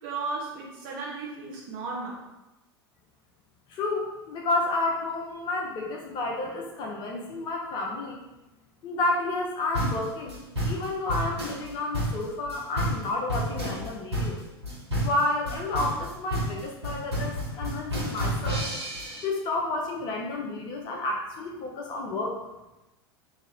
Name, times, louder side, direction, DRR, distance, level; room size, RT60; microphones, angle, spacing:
voice 1, 0.0-2.2, right 3 dB, 45° right, -5 dB, 1.0 m, -35 dB
voice 2, 3.7-8.2 8.8-10.4 10.6-14.4 15.0-18.7 19.2-22.4, left 2 dB, 35° left, 0 dB, 0.6 m, -30 dB
sound 1, 9.7-19.2, equal, 80° right, 1.4 m, -30 dB
3.1 x 2.8 x 3.6 m, 1.0 s
figure-of-eight pair, 90°, 14 cm